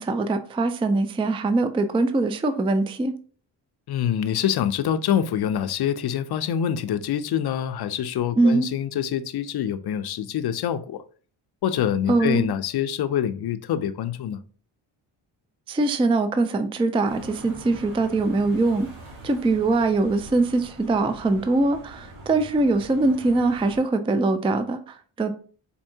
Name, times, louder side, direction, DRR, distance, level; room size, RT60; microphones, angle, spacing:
voice 1, 0.0-3.1 8.4-8.7 12.1-12.5 15.7-18.9 19.2-25.3, right 2 dB, 15° right, 0.3 m, -22 dB
voice 2, 3.9-11.0 11.6-14.4, left 9 dB, 55° left, 0.5 m, -25 dB
sound 1, 17.1-23.8, right 1 dB, 90° right, 1.4 m, -43 dB
4.4 x 2.8 x 2.7 m
cardioid pair, 70°, 48 cm